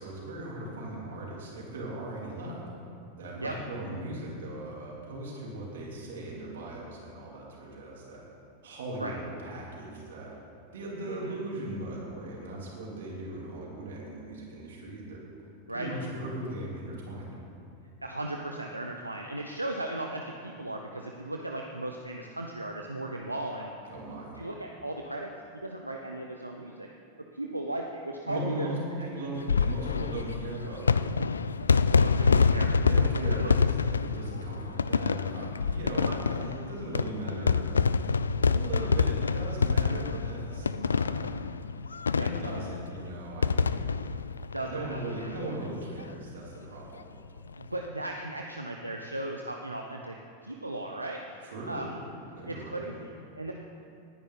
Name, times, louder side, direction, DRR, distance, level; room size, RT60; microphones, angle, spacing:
voice 1, 0.0-2.6 3.2-8.2 8.6-10.3 10.7-15.2 15.7-17.4 23.9-24.4 28.3-31.3 32.2-32.5 32.8-33.6 33.9-37.8 38.1-38.2 38.5-41.4 42.2-43.9 44.5-47.1 51.4-51.8 52.3-52.8, right 1 dB, 60° right, -4 dB, 3.6 m, -38 dB
voice 2, 11.0-11.4 15.7-15.9 18.0-23.7 24.4-25.3 25.6-26.9 27.3-28.7 29.0-29.1 32.0-32.7 33.3-33.5 42.1-42.3 44.5-45.3 47.6-50.1 50.4-51.2 51.7-52.0 52.5-53.5, right 1 dB, 85° right, 2 dB, 0.7 m, -36 dB
sound 1, 29.3-45.4 45.7-45.8 46.0-46.1 47.4-47.6, left 5 dB, 75° left, 0.3 m, -27 dB
19.0 x 10.5 x 4.0 m, 2.5 s
figure-of-eight pair, 90°, 0 cm